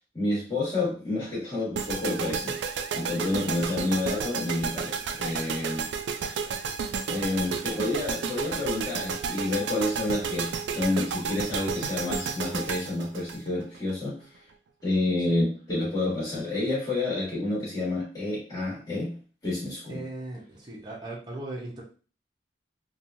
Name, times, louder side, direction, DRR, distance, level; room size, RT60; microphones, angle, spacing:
voice 1, 0.1-5.9 6.1-6.4 7.1-14.2 14.8-19.1 19.4-20.0, left 2 dB, 20° left, -8 dB, 1.2 m, -29 dB
sound 1, 1.7-13.9, right 6 dB, 65° right, 0.3 m, -32 dB
voice 2, 19.9-21.8, right 2 dB, 25° right, -3 dB, 0.7 m, -38 dB
3.0 x 2.3 x 2.6 m, 0.37 s
head